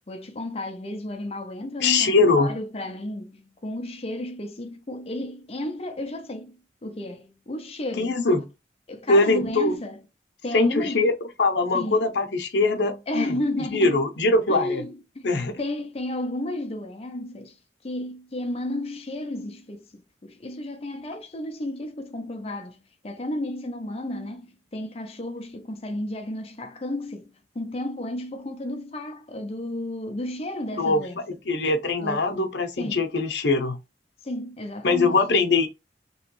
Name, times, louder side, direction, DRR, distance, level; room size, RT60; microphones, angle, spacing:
voice 1, 0.1-8.2 8.9-10.0 10.4-11.1 11.7-12.1 13.1-14.0 14.5-17.6 17.8-31.4 32.0-32.4 32.8-33.1 34.2-35.4, left 1 dB, 35° left, 0.6 m, -33 dB
voice 2, 1.8-2.5 8.0-8.4 9.1-9.8 10.5-11.1 11.4-13.4 13.7-14.8 15.2-15.6 30.8-31.0 31.5-33.8 34.8-35.7, left 3 dB, 80° left, 0.8 m, -22 dB
3.1 x 2.9 x 3.0 m
head